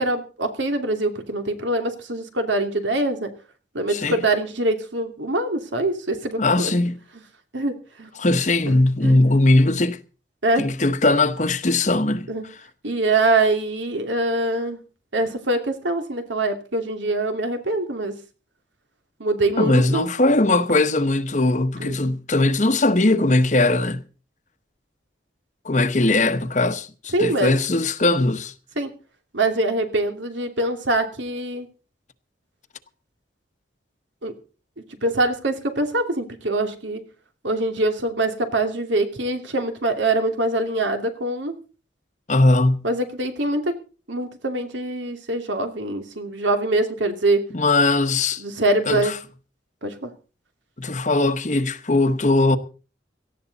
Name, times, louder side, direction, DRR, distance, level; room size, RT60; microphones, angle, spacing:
voice 1, 0.0-3.3 3.7-6.7 7.5-8.1 9.0-9.2 10.4-10.7 12.3-12.4 12.8-14.8 15.1-18.2 19.2-20.1 21.8-22.0 27.1-27.5 28.8-28.9 29.3-31.7 34.2-34.3 35.0-37.0 37.4-41.5 42.8-43.7 44.1-47.4 48.4-49.1 49.8-50.1, right 2 dB, 80° right, 2.8 m, -24 dB
voice 2, 6.4-7.0 8.2-10.0 10.6-12.3 19.6-24.0 25.6-28.5 42.3-42.9 47.5-48.4 48.9-49.2 50.8-52.6, left 2 dB, 40° left, 1.0 m, -19 dB
18.0 x 14.0 x 4.1 m
head